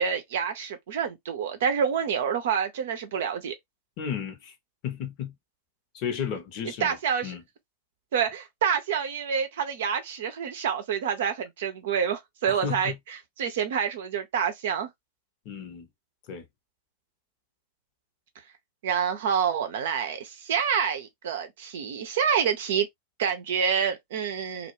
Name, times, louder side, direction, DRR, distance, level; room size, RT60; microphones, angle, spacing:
voice 1, 0.0-3.6 6.8-7.4 8.1-14.9 18.8-22.9 23.2-24.7, right 7 dB, 55° right, 0.5 m, -27 dB
voice 2, 4.0-4.5 4.8-5.3 5.9-7.0 7.2-7.4 12.5-12.9 15.4-15.9 16.3-16.4, left 8 dB, 45° left, 0.7 m, -33 dB
2.2 x 2.0 x 2.9 m
figure-of-eight pair, 90°, 0 cm